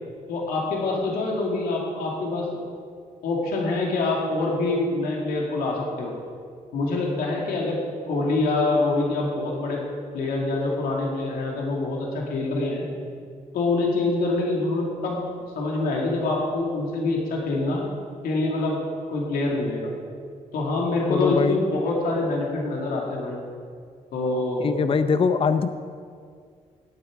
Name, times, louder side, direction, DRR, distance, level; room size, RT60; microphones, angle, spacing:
voice 1, 0.3-2.5 3.2-6.1 6.7-7.8 8.1-9.8 10.1-12.9 13.5-15.2 15.6-17.8 18.2-18.8 19.1-19.9 20.5-23.4 24.1-24.7, left 2 dB, 90° left, -2 dB, 2.4 m, -25 dB
voice 2, 21.1-21.6 24.6-25.7, left 5 dB, 40° left, 10 dB, 0.6 m, -22 dB
18.0 x 8.8 x 4.9 m, 2.1 s
cardioid pair, 85°, 15 cm